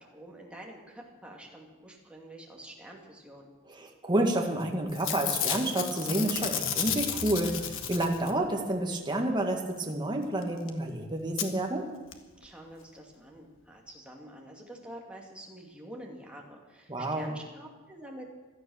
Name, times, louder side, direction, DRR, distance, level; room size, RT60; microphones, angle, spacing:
voice 1, 0.0-3.5 12.4-18.3, right 1 dB, 5° right, -1 dB, 2.5 m, -47 dB
voice 2, 3.7-11.9 16.9-17.3, right 1 dB, 20° right, 1 dB, 1.8 m, -29 dB
Packing tape duct tape / Tearing, 4.4-4.6 4.9-8.5 10.4-10.5 10.7-10.8 11.4-11.5 12.1-12.2 12.4-12.5, left 8 dB, 65° left, 1.4 m, -32 dB
16.5 x 12.0 x 6.4 m, 1.2 s
head